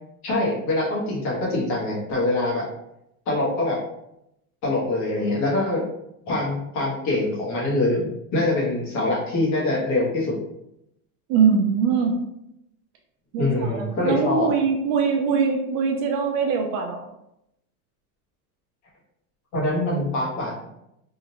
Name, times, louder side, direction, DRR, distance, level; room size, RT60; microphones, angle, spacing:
voice 1, 0.2-2.7 3.3-3.8 4.6-5.8 6.3-10.3 13.4-14.5 19.5-20.7, left 2 dB, 40° left, -4 dB, 1.4 m, -24 dB
voice 2, 11.3-12.1 13.3-17.0, right 6 dB, 45° right, 2 dB, 0.5 m, -22 dB
3.7 x 2.5 x 2.9 m, 0.82 s
supercardioid pair, 140°, 44 cm